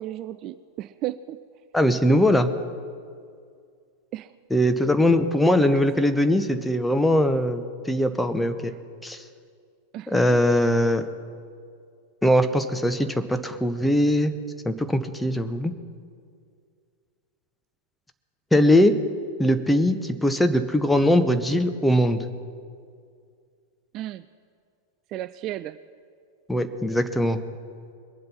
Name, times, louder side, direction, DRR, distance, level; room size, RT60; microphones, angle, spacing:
voice 1, 0.0-1.4 4.1-4.3 5.6-5.9 9.9-10.4 23.9-24.2 25.1-25.8, right 14 dB, 35° right, 13 dB, 0.3 m, -34 dB
voice 2, 1.7-2.5 4.5-8.7 9.0-9.2 10.1-11.1 12.2-14.3 14.6-15.7 18.5-19.0 19.4-22.2 26.5-27.4, left 1 dB, 5° left, 8 dB, 0.9 m, -21 dB
22.0 x 7.7 x 5.7 m, 2.2 s
figure-of-eight pair, 90°, 0 cm